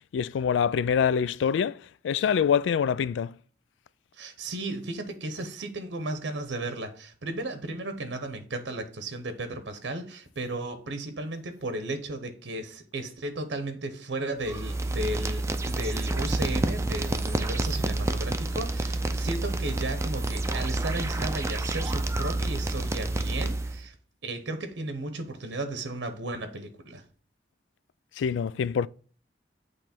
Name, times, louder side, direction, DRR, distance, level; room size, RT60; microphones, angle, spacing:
voice 1, 0.1-3.3 28.2-28.9, left 7 dB, 90° left, 0.3 m, -25 dB
voice 2, 4.1-23.9 24.2-27.0, right 2 dB, 80° right, 0.8 m, -35 dB
sound 1, 14.4-23.8, right 2 dB, 15° right, 0.4 m, -29 dB
8.1 x 3.2 x 4.3 m
head